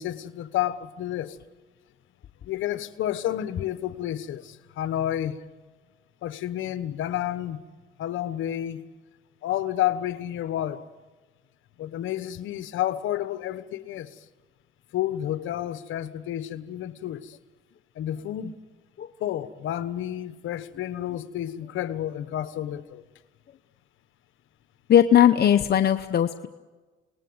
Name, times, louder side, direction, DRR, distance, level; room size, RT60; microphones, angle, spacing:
voice 1, 0.0-1.4 2.4-5.4 6.2-7.6 8.0-8.8 9.4-10.8 11.8-14.1 14.9-17.4 17.9-18.6 19.2-23.0, left 12 dB, 80° left, 1.2 m, -30 dB
voice 2, 24.9-26.5, left 10 dB, 55° left, 0.8 m, -19 dB
28.0 x 19.5 x 8.0 m
cardioid pair, 90°, 20 cm